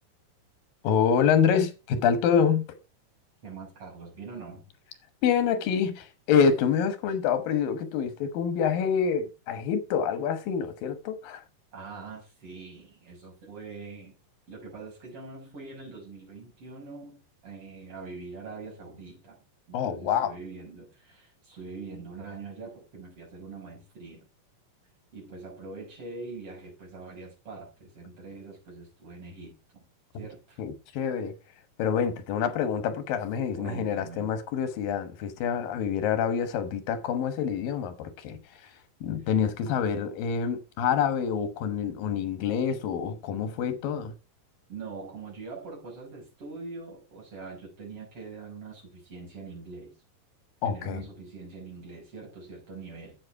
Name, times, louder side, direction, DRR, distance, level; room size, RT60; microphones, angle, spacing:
voice 1, 0.8-2.6 5.2-11.4 19.7-20.3 30.6-31.3 31.8-38.4 39.0-44.1 50.6-51.0, left 7 dB, 80° left, 3.0 m, -26 dB
voice 2, 3.4-4.6 11.7-14.1 14.5-19.4 19.7-24.3 25.1-29.8 30.1-30.6 33.6-34.3 44.7-50.0 50.6-53.2, right 4 dB, 40° right, 6.7 m, -43 dB
9.6 x 8.1 x 4.7 m
omnidirectional pair, 4.0 m